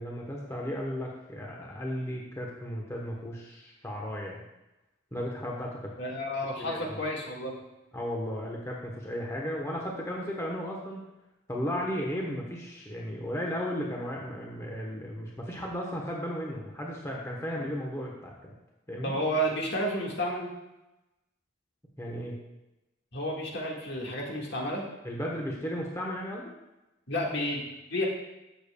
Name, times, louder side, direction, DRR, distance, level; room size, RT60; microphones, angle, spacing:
voice 1, 0.0-4.4 5.1-5.9 6.6-7.0 7.9-11.0 11.5-18.5 18.9-19.2 22.0-22.4 25.0-26.5, equal, 15° left, -2 dB, 0.9 m, -35 dB
voice 2, 6.0-7.6 17.5-17.6 19.0-20.5 23.1-24.9 27.1-27.6 27.9-28.0, equal, 60° left, -2 dB, 1.6 m, -31 dB
12.0 x 6.9 x 2.2 m, 0.97 s
head